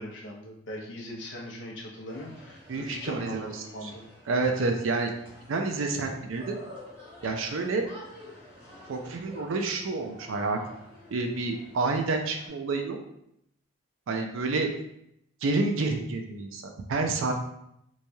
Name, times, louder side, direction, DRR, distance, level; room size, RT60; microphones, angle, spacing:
voice 1, 0.0-4.1, equal, 55° left, -2 dB, 0.6 m, -40 dB
sound 1, 2.1-12.5, left 1 dB, 25° right, 1.0 m, -50 dB
voice 2, 2.7-3.9 4.3-5.1 5.5-6.6 7.2-7.8 8.9-10.6 11.1-13.0 14.1-14.7 15.4-17.3, right 3 dB, 65° right, 4 dB, 0.4 m, -29 dB
3.1 x 2.2 x 2.7 m, 0.78 s
head